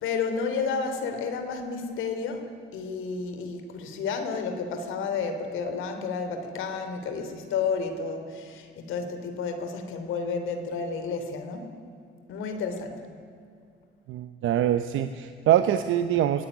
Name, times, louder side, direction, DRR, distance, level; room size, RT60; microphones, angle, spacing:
voice 1, 0.0-11.7 12.3-13.0, left 5 dB, 85° left, 7 dB, 3.2 m, -31 dB
voice 2, 14.1-16.5, right 11 dB, 85° right, 9 dB, 1.0 m, -24 dB
25.5 x 18.0 x 9.9 m, 2.3 s
cardioid pair, 90°, 20 cm